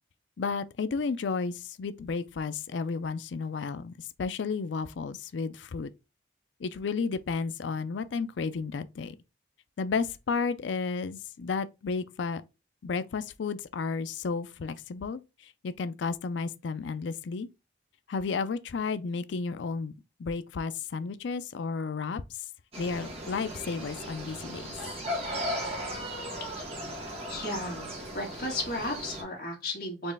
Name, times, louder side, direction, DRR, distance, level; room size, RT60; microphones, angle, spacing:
voice 1, 0.4-5.9 6.6-9.2 9.8-12.4 12.8-17.5 18.1-19.9 20.2-22.4 22.8-24.7, left 4 dB, 85° left, 0.4 m, -32 dB
sound 1, 22.7-29.2, equal, 35° right, 1.3 m, -37 dB
voice 2, 27.3-27.9 28.1-30.1, left 1 dB, 55° left, 1.8 m, -34 dB
4.4 x 3.0 x 3.3 m
head